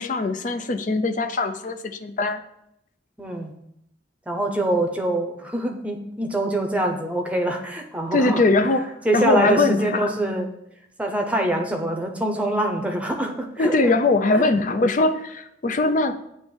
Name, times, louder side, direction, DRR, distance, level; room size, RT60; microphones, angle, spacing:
voice 1, 0.0-2.4 8.1-8.8 9.1-10.1 13.6-16.2, left 2 dB, 45° left, 9 dB, 0.5 m, -21 dB
voice 2, 3.2-3.5 4.3-8.4 9.0-10.5 11.0-13.9 14.3-14.5, right 1 dB, 5° right, 3 dB, 0.8 m, -24 dB
8.2 x 3.1 x 6.2 m, 0.79 s
head